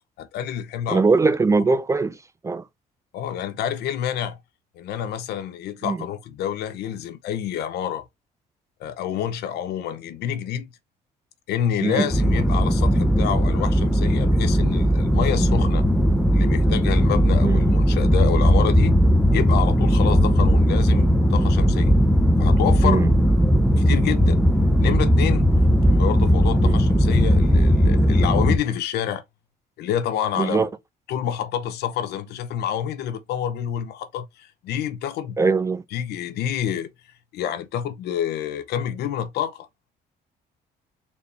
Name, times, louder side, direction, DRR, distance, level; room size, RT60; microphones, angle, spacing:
voice 1, 0.2-1.0 3.1-4.4 4.8-8.0 8.8-10.7 11.5-15.8 16.3-18.9 19.3-21.9 22.4-23.0 23.8-24.4 24.8-25.5 25.9-29.2 29.8-30.7 31.1-35.4 35.9-36.9 37.3-39.7, left 9 dB, 75° left, 0.8 m, -28 dB
voice 2, 0.9-2.2 2.4-2.6 5.8-6.0 11.8-12.1 17.4-17.6 22.8-23.1 26.6-26.7 30.4-30.7 35.4-35.8, right 4 dB, 20° right, 0.4 m, -21 dB
sound 1, 12.1-28.6, equal, ahead, 0.7 m, -18 dB
4.2 x 3.4 x 2.9 m
cardioid pair, 110°, 17 cm